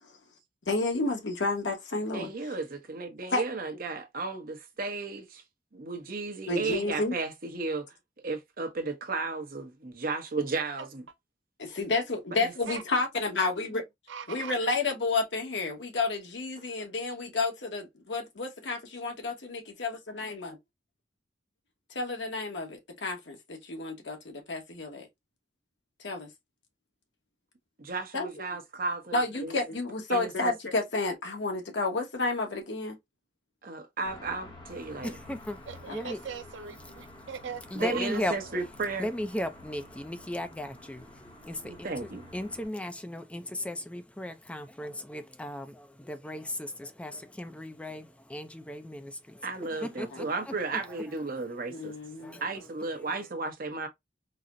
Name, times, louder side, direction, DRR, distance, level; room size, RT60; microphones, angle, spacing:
voice 1, 0.7-2.3 3.3-3.4 6.5-7.2 11.6-13.8 14.3-20.5 21.9-25.1 26.0-26.3 28.1-28.4 29.1-33.0 35.9-36.0 51.7-52.4, left 3 dB, 75° left, 1.0 m, -31 dB
voice 2, 2.1-5.4 5.7-7.9 8.2-11.0 12.4-12.5 27.8-29.5 30.1-30.5 33.6-35.1 37.8-39.1 41.6-42.3 49.4-51.9 52.4-53.9, right 3 dB, 50° right, 0.8 m, -34 dB
voice 3, 14.1-14.5 35.7-38.2, right 6 dB, 85° right, 0.5 m, -41 dB
sound 1, 34.0-42.7, left 2 dB, 25° left, 0.8 m, -50 dB
voice 4, 34.9-36.2 37.7-38.3 39.0-51.2 52.2-53.2, left 1 dB, 5° left, 0.4 m, -37 dB
4.0 x 2.0 x 2.4 m
head